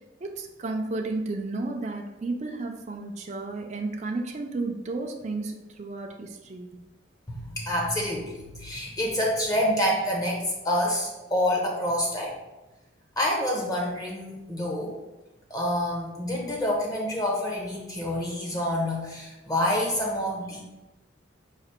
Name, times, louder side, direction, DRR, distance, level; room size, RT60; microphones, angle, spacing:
voice 1, 0.2-6.8, right 3 dB, 35° right, 2 dB, 0.4 m, -33 dB
voice 2, 7.3-12.4 13.2-15.0 15.5-20.6, left 1 dB, 20° left, -1 dB, 0.7 m, -27 dB
4.9 x 2.5 x 4.3 m, 1.0 s
head